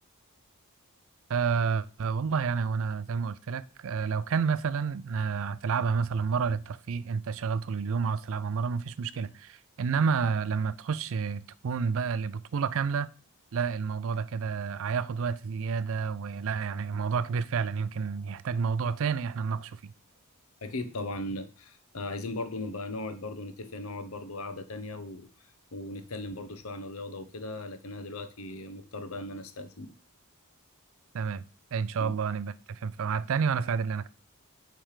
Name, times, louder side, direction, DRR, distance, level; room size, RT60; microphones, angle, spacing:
voice 1, 1.3-13.1 13.5-19.9 31.1-31.4 31.7-34.1, right 5 dB, 65° right, 0.4 m, -30 dB
voice 2, 20.6-25.3 25.7-29.9 32.0-32.1, left 2 dB, 70° left, 0.9 m, -38 dB
8.8 x 3.4 x 4.9 m
head